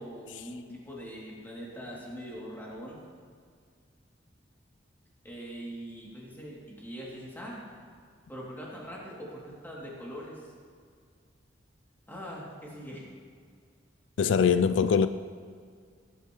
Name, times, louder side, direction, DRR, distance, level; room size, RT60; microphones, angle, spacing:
voice 1, 0.0-3.0 5.2-7.6 8.3-10.4 12.1-13.0, equal, 10° left, -5 dB, 2.7 m, -42 dB
voice 2, 14.2-15.1, left 6 dB, 75° left, 12 dB, 0.4 m, -22 dB
18.0 x 10.0 x 3.1 m, 2.1 s
head